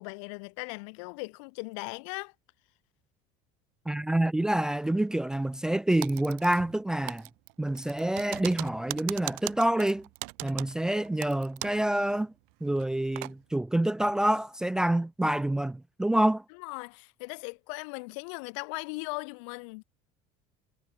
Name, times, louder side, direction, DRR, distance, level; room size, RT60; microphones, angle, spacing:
voice 1, 0.0-2.3 16.5-19.8, left 31 dB, 85° left, 6.4 m, -38 dB
voice 2, 3.9-7.3 7.6-10.1 10.4-12.3 12.6-16.4, right 1 dB, 5° right, 0.4 m, -27 dB
Typing, 6.0-6.8 7.1-11.9 12.2-12.3 12.8-13.3, right 40 dB or more, 75° right, 5.0 m, -39 dB
cardioid pair, 170°, 15 cm